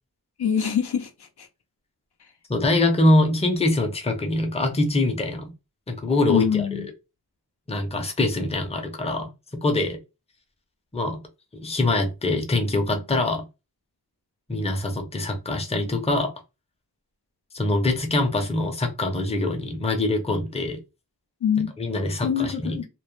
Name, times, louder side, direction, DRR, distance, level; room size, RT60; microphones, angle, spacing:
voice 1, 0.4-1.1 1.4-1.5 6.3-6.9 21.4-21.7 22.2-22.9, left 8 dB, 75° left, 0.6 m, -24 dB
voice 2, 2.5-5.5 5.9-6.9 7.7-9.3 9.6-10.0 10.9-11.2 11.5-13.4 14.5-16.3 17.5-20.8 21.8-22.8, left 2 dB, 15° left, 0.5 m, -24 dB
2.3 x 2.0 x 3.0 m
wide cardioid pair, 75°, 40 cm